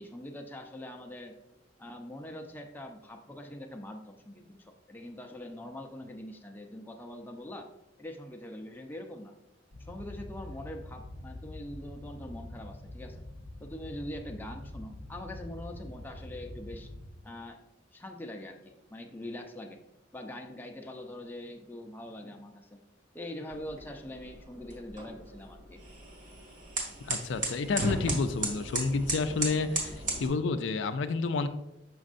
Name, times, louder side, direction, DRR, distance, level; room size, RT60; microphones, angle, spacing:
voice 1, 0.0-1.4 1.8-7.7 8.0-9.3 9.8-13.2 13.6-16.9 17.2-17.6 17.9-19.8 20.1-22.8 23.1-25.8, left 1 dB, 10° left, 3 dB, 0.6 m, -43 dB
sound 1, 9.7-17.1, left 1 dB, 80° right, 2.0 m, -45 dB
sound 2, 23.5-30.3, right 2 dB, 45° right, 1.9 m, -36 dB
voice 2, 27.0-31.5, left 4 dB, 75° left, 9 dB, 0.4 m, -30 dB
6.4 x 6.2 x 2.5 m, 0.85 s
head